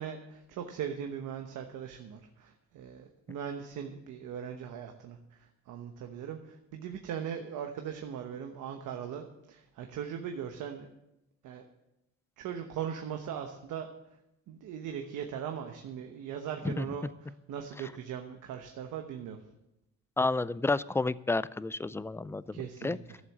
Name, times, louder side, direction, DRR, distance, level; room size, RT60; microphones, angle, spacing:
voice 1, 0.0-10.9 11.4-11.6 12.4-13.9 14.5-19.4 22.5-23.2, right 8 dB, 85° right, 4 dB, 1.1 m, -39 dB
voice 2, 20.2-23.0, left 3 dB, 10° left, 18 dB, 0.3 m, -30 dB
12.5 x 7.4 x 7.2 m, 0.87 s
cardioid pair, 90°, 30 cm